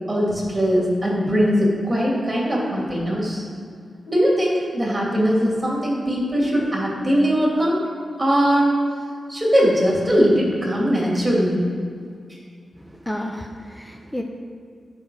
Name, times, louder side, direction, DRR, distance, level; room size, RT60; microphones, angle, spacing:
voice 1, 0.1-3.4 4.1-7.8 8.2-8.7 9.3-11.6, equal, 15° right, -4 dB, 2.6 m, -20 dB
voice 2, 12.8-14.2, left 1 dB, 5° left, 2 dB, 0.6 m, -31 dB
9.7 x 5.2 x 6.4 m, 2.2 s
wide cardioid pair, 140°, 0 cm